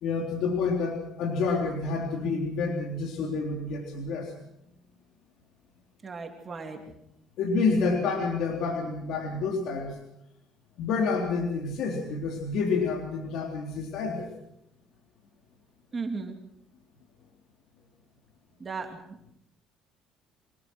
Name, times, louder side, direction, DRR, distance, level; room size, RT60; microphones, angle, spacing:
voice 1, 0.0-4.3 7.4-10.0 10.8-14.3, left 4 dB, 65° left, 1 dB, 3.7 m, -28 dB
voice 2, 6.0-6.9 15.9-16.4 18.6-19.2, right 4 dB, 25° right, 3 dB, 3.0 m, -36 dB
25.0 x 19.0 x 6.3 m, 0.78 s
cardioid pair, 125°, 0 cm